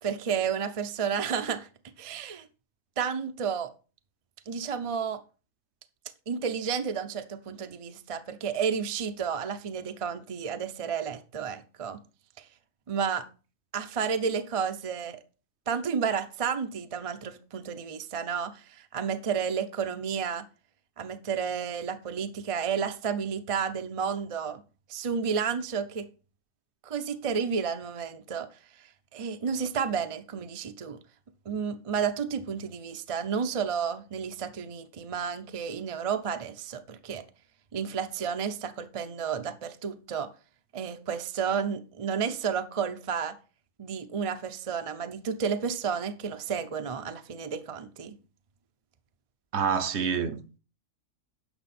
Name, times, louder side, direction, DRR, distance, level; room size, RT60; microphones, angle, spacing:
voice 1, 0.0-1.7 2.0-2.5 3.0-3.7 4.5-5.2 6.3-12.0 12.4-12.5 12.9-13.3 13.7-15.2 15.7-20.5 21.0-24.6 24.9-26.1 26.8-28.5 29.1-31.0 31.5-37.2 37.7-40.3 40.7-43.4 43.8-48.2, right 6 dB, 35° right, 0.5 m, -31 dB
voice 2, 49.5-50.6, right 6 dB, 60° right, 0.9 m, -28 dB
10.5 x 6.3 x 4.2 m
omnidirectional pair, 1.4 m